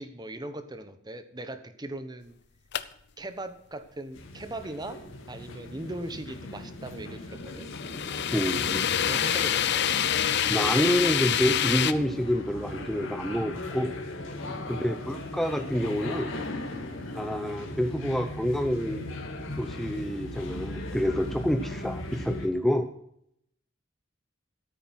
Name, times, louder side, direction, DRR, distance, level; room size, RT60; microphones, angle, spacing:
voice 1, 0.0-2.4 3.2-5.0 5.3-7.7 9.1-9.9 14.4-14.6 21.3-21.4, right 1 dB, 20° right, 10 dB, 1.1 m, -39 dB
sound 1, 2.7-2.8 7.6-11.9, left 10 dB, 60° left, 0.7 m, -26 dB
sound 2, 4.1-22.5, left 1 dB, 85° left, 2.1 m, -37 dB
voice 2, 8.3-8.8 10.5-13.9 14.7-16.4 17.1-19.0 19.6-22.9, equal, ahead, 6 dB, 0.7 m, -28 dB
13.5 x 8.8 x 6.2 m, 0.72 s
head